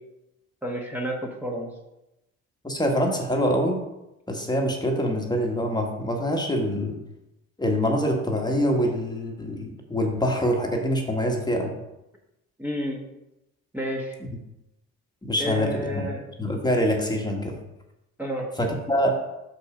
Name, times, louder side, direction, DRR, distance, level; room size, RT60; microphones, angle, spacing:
voice 1, 0.6-1.1 1.4-1.7 12.6-13.0 13.7-14.2 15.4-16.2 18.2-18.5, equal, 5° right, -3 dB, 1.2 m, -30 dB
voice 2, 2.6-3.8 4.3-7.0 7.6-11.7 15.2-16.1 16.4-17.5 18.6-19.2, equal, 15° left, 1 dB, 1.3 m, -25 dB
6.1 x 5.5 x 5.0 m, 0.92 s
cardioid pair, 90°, 30 cm